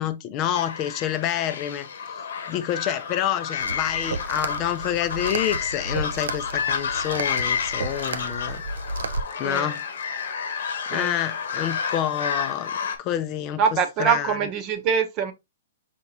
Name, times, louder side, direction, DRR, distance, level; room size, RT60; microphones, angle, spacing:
voice 1, 0.0-2.2 2.5-8.6 9.4-9.8 10.9-12.7 13.0-13.6 14.0-14.4, left 11 dB, 35° left, 0.5 m, -28 dB
sound 1, 0.5-13.0, left 6 dB, 75° left, 1.0 m, -30 dB
sound 2, 3.6-9.2, right 3 dB, 80° right, 0.5 m, -33 dB
voice 2, 13.6-15.3, right 7 dB, 35° right, 0.9 m, -24 dB
4.5 x 4.3 x 2.7 m
hypercardioid pair, 135°, 0 cm